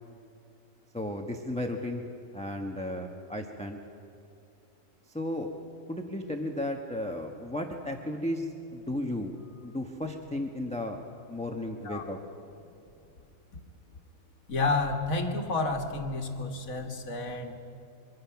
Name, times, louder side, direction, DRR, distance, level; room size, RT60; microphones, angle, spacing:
voice 1, 0.9-2.0 2.3-3.8 5.1-5.5 5.9-9.3 9.6-11.0 11.3-12.2, left 1 dB, 5° left, 3 dB, 1.0 m, -34 dB
voice 2, 14.5-17.5, left 3 dB, 85° left, 4 dB, 2.1 m, -30 dB
24.0 x 23.5 x 5.9 m, 2.6 s
omnidirectional pair, 1.4 m